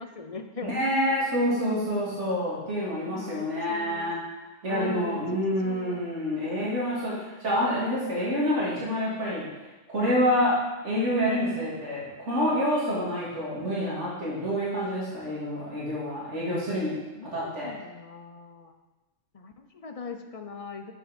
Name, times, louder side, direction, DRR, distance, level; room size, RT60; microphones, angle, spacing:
voice 1, 0.0-0.8 3.1-4.1 4.7-6.0 17.1-18.7 19.3-20.9, left 5 dB, 40° left, 6 dB, 0.5 m, -40 dB
voice 2, 0.6-4.2 4.6-9.5 9.9-10.5 10.8-17.0 17.3-17.7, equal, 65° right, -7 dB, 2.8 m, -27 dB
11.0 x 5.9 x 4.3 m, 1.1 s
omnidirectional pair, 1.3 m